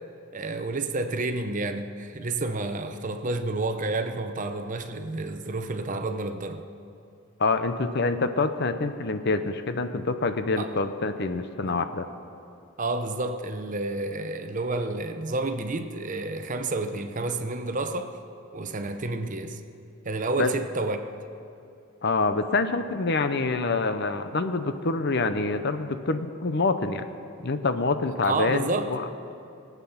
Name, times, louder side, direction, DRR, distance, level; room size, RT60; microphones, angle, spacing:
voice 1, 0.3-6.6 10.6-10.7 11.6-11.8 12.8-18.1 18.5-19.6 20.0-21.0 28.2-28.9, right 2 dB, 35° right, 0.7 m, -30 dB
voice 2, 7.4-12.0 20.4-20.5 22.0-27.0 27.4-29.0, left 3 dB, 50° left, 0.7 m, -26 dB
20.5 x 8.3 x 5.8 m
head